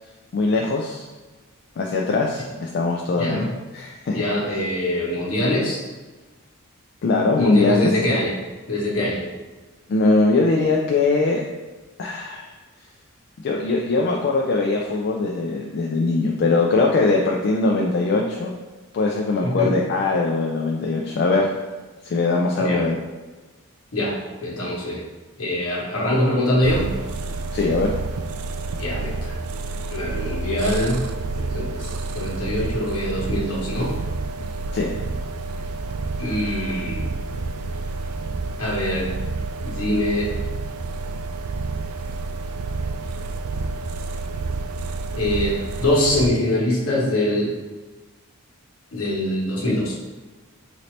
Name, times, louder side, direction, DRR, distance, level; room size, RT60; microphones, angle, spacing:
voice 1, 0.3-1.1 1.8-3.5 3.7-4.2 7.0-7.9 9.9-11.4 12.0-12.5 13.4-18.5 18.9-21.5 22.0-23.0 27.5-27.9 34.7-34.9, left 3 dB, 50° left, 0 dB, 0.3 m, -21 dB
voice 2, 3.2-3.5 4.1-5.8 7.4-8.3 8.7-9.2 19.4-19.7 22.6-22.8 23.9-25.0 25.4-26.9 28.8-29.4 29.9-31.1 31.4-34.0 36.2-37.1 38.6-39.1 39.6-40.3 45.1-47.5 48.9-50.0, left 1 dB, 70° left, -5 dB, 1.2 m, -23 dB
sound 1, 26.6-46.3, right 3 dB, 85° right, 0.3 m, -29 dB
3.9 x 2.7 x 3.2 m, 1.2 s
head